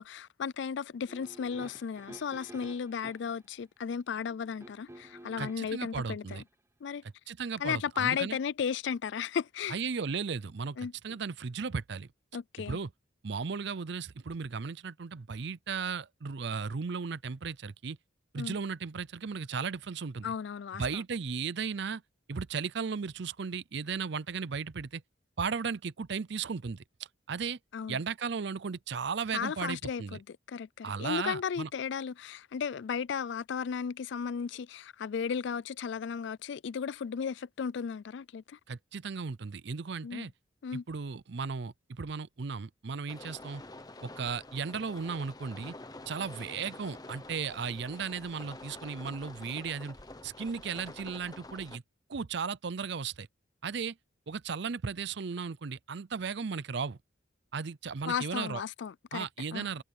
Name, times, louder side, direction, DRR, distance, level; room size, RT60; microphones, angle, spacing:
voice 1, 0.0-6.4 6.8-7.0 7.6-9.8 10.8-10.9 12.3-12.8 18.4-18.5 20.2-21.0 27.7-28.0 29.3-38.6 40.0-40.3 40.6-40.8 58.0-59.3 59.5-59.7, left 7 dB, 60° left, 0.3 m, -35 dB
sound 1, 1.1-3.4 4.6-5.8 6.3-6.4, right 1 dB, 15° right, 0.9 m, -51 dB
voice 2, 5.4-6.4 7.3-8.4 9.7-12.1 12.6-12.9 13.2-18.0 18.3-20.3 20.8-22.0 22.3-25.0 25.4-26.8 27.3-27.6 27.9-30.2 30.8-31.7 38.7-40.3 40.7-43.6 44.0-45.7 46.1-50.0 50.2-51.8 52.1-53.3 53.6-54.0 54.3-57.0 57.5-58.6 59.1-59.8, right 5 dB, 55° right, 0.5 m, -35 dB
sound 2, 43.1-51.8, left 2 dB, 20° left, 1.0 m, -48 dB
head